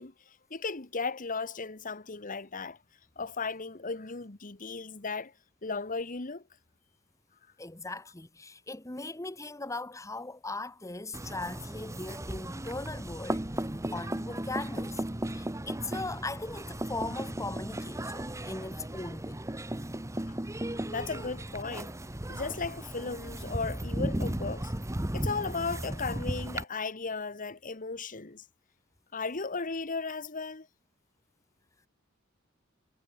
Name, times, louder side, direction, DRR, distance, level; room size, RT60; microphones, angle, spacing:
voice 1, 0.0-2.8 3.2-5.3 5.6-6.4 20.2-22.0 22.3-24.7 25.1-28.4 29.1-30.7, left 4 dB, 40° left, 1.4 m, -36 dB
voice 2, 7.6-15.0 15.3-19.4, left 2 dB, 15° left, 1.2 m, -39 dB
sound 1, 11.1-26.6, right 1 dB, 15° right, 1.1 m, -36 dB
head